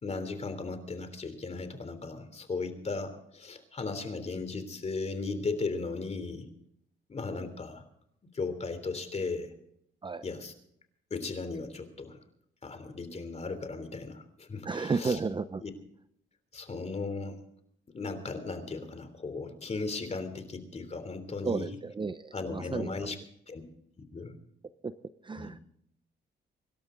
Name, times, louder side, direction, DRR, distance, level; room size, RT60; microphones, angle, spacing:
voice 1, 0.0-6.5 7.1-7.8 8.3-9.5 10.2-10.5 11.1-12.2 12.6-15.2 15.6-15.7 16.5-17.4 17.9-21.7 22.3-23.2 23.5-23.6 24.0-24.3 25.4-25.5, left 3 dB, 35° left, 9 dB, 3.3 m, -36 dB
voice 2, 14.6-15.6 21.4-23.1 24.8-24.9 25.2-25.6, right 4 dB, 25° right, 13 dB, 0.6 m, -33 dB
25.0 x 12.5 x 3.9 m, 0.71 s
cardioid pair, 90°, 20 cm